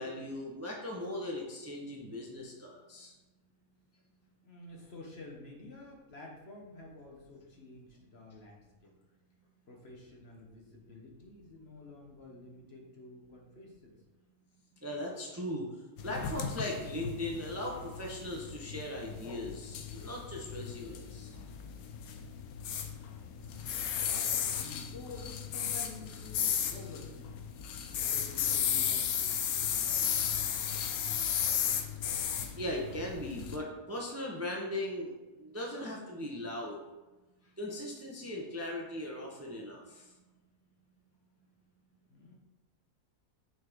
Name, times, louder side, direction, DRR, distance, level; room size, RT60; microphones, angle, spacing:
voice 1, 0.0-3.1 14.8-15.7 16.0-21.3 32.6-35.1 35.4-36.8 37.6-39.8, left 1 dB, 15° right, -1 dB, 0.7 m, -38 dB
voice 2, 4.4-8.9 9.7-14.0 23.2-27.4 27.9-31.7 42.1-42.3, left 2 dB, 50° left, -1 dB, 1.3 m, -50 dB
sound 1, 16.0-33.6, left 8 dB, 80° left, 1.1 m, -34 dB
6.3 x 5.6 x 3.6 m, 1.1 s
omnidirectional pair, 1.5 m